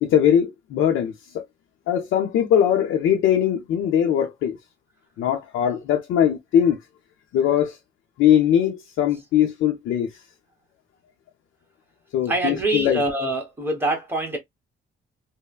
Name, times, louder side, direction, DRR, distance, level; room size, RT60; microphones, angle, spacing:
voice 1, 0.0-1.4 1.9-4.6 5.2-6.8 7.3-7.8 8.2-10.1 12.1-13.0, left 9 dB, 80° left, 0.6 m, -20 dB
voice 2, 12.3-14.4, right 2 dB, 10° right, 1.2 m, -24 dB
3.1 x 2.1 x 2.3 m
cardioid pair, 90°, 20 cm